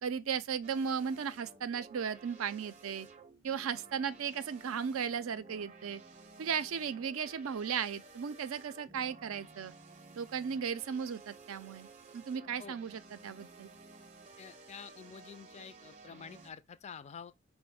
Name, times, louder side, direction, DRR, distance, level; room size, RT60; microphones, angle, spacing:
voice 1, 0.0-3.1 3.4-6.0 6.4-9.7 10.1-11.9 12.1-13.7, right 7 dB, 85° right, 0.4 m, -36 dB
sound 1, 0.6-16.5, right 3 dB, 40° right, 0.7 m, -55 dB
voice 2, 14.4-17.3, left 6 dB, 35° left, 0.3 m, -48 dB
5.0 x 2.1 x 4.7 m
head